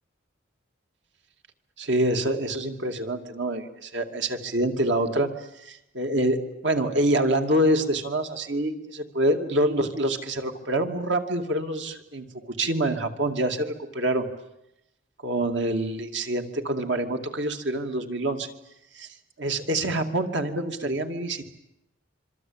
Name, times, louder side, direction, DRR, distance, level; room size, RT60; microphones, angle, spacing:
voice 1, 1.8-5.3 5.6-14.2 15.2-18.5 19.0-19.1 19.4-21.5, right 1 dB, 65° right, 6 dB, 2.6 m, -26 dB
26.0 x 24.5 x 8.9 m, 0.86 s
head